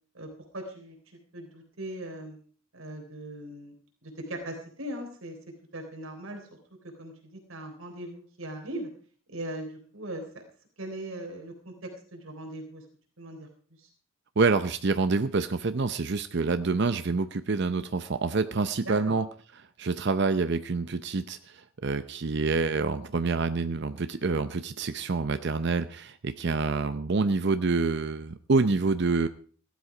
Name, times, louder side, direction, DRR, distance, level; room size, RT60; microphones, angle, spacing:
voice 1, 0.1-1.0 1.3-2.4 2.7-3.8 4.0-5.4 5.7-6.4 6.8-8.9 9.3-10.4 10.8-12.8 13.2-13.5 13.8-13.9 18.9-19.2, right 1 dB, 90° right, 3 dB, 3.6 m, -39 dB
voice 2, 14.4-19.3 19.8-29.3, right 3 dB, 55° right, 11 dB, 0.6 m, -27 dB
16.0 x 12.5 x 4.9 m, 0.43 s
head